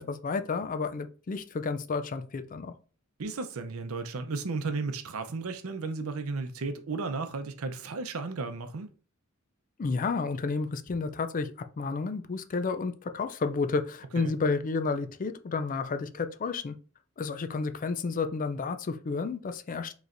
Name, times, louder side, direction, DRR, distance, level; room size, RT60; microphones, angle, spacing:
voice 1, 0.0-2.7 9.8-16.8 17.2-19.9, left 4 dB, 40° left, 0.4 m, -31 dB
voice 2, 3.2-8.9 14.2-14.3, right 4 dB, 75° right, 0.6 m, -34 dB
5.1 x 3.1 x 2.5 m
head